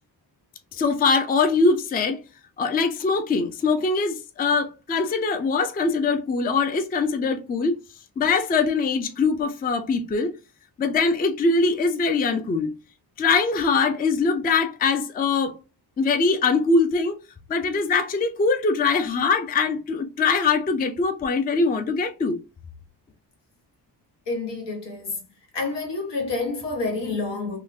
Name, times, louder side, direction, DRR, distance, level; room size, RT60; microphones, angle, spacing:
voice 1, 0.7-2.2 2.6-7.8 8.2-10.3 10.8-12.7 13.2-15.6 16.0-17.2 17.5-22.4, left 4 dB, 25° left, 0.3 m, -22 dB
voice 2, 24.3-25.2 25.5-27.6, left 3 dB, 85° left, 1.3 m, -28 dB
3.6 x 2.3 x 2.6 m
wide cardioid pair, 125°, 42 cm